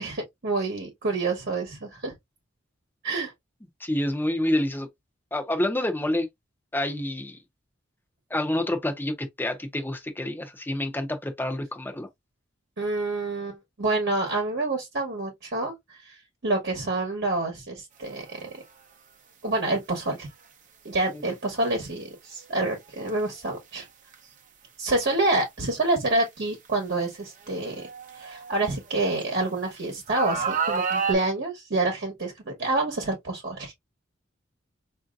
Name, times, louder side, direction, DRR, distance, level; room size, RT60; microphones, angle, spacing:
voice 1, 0.0-2.1 3.0-3.3 12.8-18.6 19.4-20.3 20.8-23.9 24.8-27.9 28.1-33.7, right 2 dB, 55° right, 1.1 m, -28 dB
voice 2, 3.8-4.9 5.3-6.3 6.7-7.4 8.3-12.1 21.1-21.2, left 1 dB, 10° left, 0.7 m, -28 dB
sound 1, 18.3-18.5 19.9-20.0 23.0-23.2 24.1-24.2 25.3-25.4 26.1-26.2 27.4-29.2 30.1-31.1, right 5 dB, 40° right, 0.7 m, -29 dB
4.8 x 2.6 x 2.4 m
head